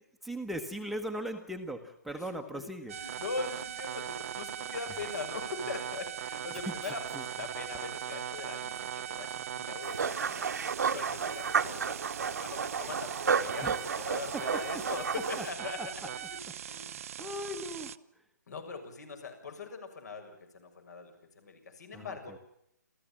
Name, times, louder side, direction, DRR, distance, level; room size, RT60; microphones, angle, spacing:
voice 1, 0.2-2.9 6.5-7.2 13.6-13.8 14.3-14.4 15.4-15.5 15.8-15.9 16.8-17.9 21.9-22.2, equal, ahead, 3 dB, 1.3 m, -39 dB
voice 2, 2.1-2.6 2.9-16.9 18.5-22.4, left 4 dB, 65° left, 6 dB, 7.0 m, -42 dB
sound 1, 2.9-18.0, right 10 dB, 50° right, 0.7 m, -40 dB
sound 2, 9.8-15.5, right 6 dB, 70° right, 1.4 m, -32 dB
28.5 x 15.0 x 7.3 m, 0.75 s
figure-of-eight pair, 140°, 10 cm